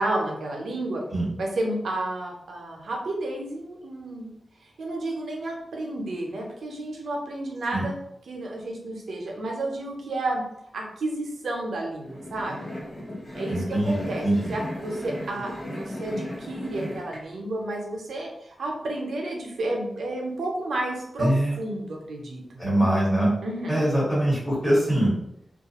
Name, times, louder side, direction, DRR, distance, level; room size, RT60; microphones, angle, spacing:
voice 1, 0.0-1.0 1.4-4.3 4.6-8.0 8.3-10.4 10.7-12.7 13.3-22.6 23.4-23.9, right 1 dB, 90° right, 0 dB, 0.6 m, -31 dB
sound 1, 12.0-17.2, left 1 dB, 45° left, 1.0 m, -36 dB
voice 2, 13.5-14.5 21.2-21.5 22.6-23.3 23.7-25.1, right 1 dB, 15° left, -8 dB, 1.2 m, -23 dB
2.3 x 2.3 x 2.8 m, 0.78 s
wide cardioid pair, 95°, 0 cm